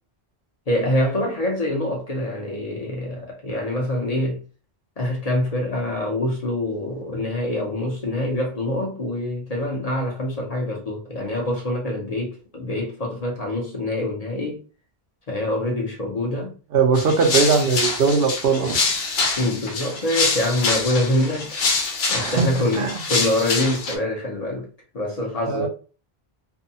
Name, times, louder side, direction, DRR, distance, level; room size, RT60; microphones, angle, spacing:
voice 1, 0.7-4.4 5.0-14.6 15.3-16.5 19.4-25.7, left 1 dB, 45° left, 0.7 m, -25 dB
voice 2, 16.7-18.8 22.1-22.5 22.7-22.9 25.5-25.7, right 5 dB, 70° right, 0.8 m, -20 dB
sound 1, 17.0-24.0, left 4 dB, 80° left, 0.9 m, -25 dB
2.6 x 2.2 x 2.7 m
omnidirectional pair, 1.1 m